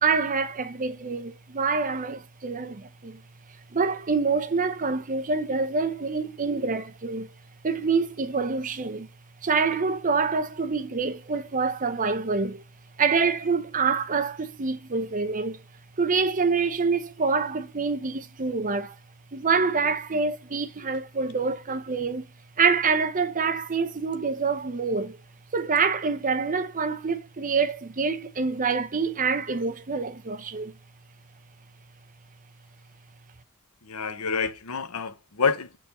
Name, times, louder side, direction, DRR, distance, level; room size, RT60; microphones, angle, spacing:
voice 1, 0.0-3.2 3.7-7.3 7.6-9.1 9.4-12.6 13.0-15.6 16.0-19.0 19.3-22.3 22.6-25.2 25.5-30.7, right 4 dB, 35° right, 0.7 m, -26 dB
voice 2, 33.8-35.8, left 5 dB, 70° left, 0.8 m, -28 dB
7.3 x 3.9 x 4.1 m
head